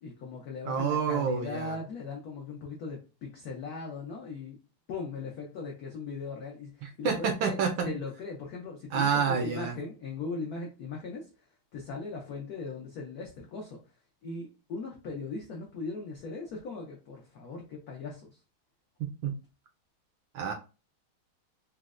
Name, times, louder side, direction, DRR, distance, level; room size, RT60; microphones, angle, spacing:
voice 1, 0.0-4.6 4.9-7.6 7.8-11.3 11.7-13.8 14.2-18.4, left 4 dB, 80° left, 0.8 m, -39 dB
voice 2, 0.7-1.7 6.8-7.9 8.9-9.7 19.0-19.3 20.3-20.5, right 6 dB, 75° right, 1.2 m, -28 dB
4.2 x 2.0 x 2.4 m
omnidirectional pair, 2.4 m